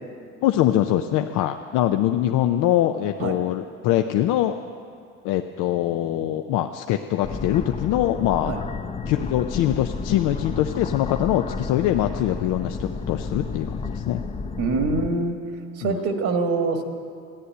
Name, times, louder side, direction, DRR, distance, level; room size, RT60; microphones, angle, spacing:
voice 1, 0.4-4.6 5.2-8.5 9.1-14.2 15.8-16.0, left 12 dB, 80° left, 6 dB, 0.6 m, -23 dB
sound 1, 7.2-15.1, left 4 dB, 20° left, 0.6 m, -31 dB
voice 2, 14.6-15.4 15.8-16.8, right 3 dB, 65° right, 4 dB, 1.6 m, -24 dB
14.0 x 10.0 x 9.5 m, 2.4 s
cardioid pair, 100°, 31 cm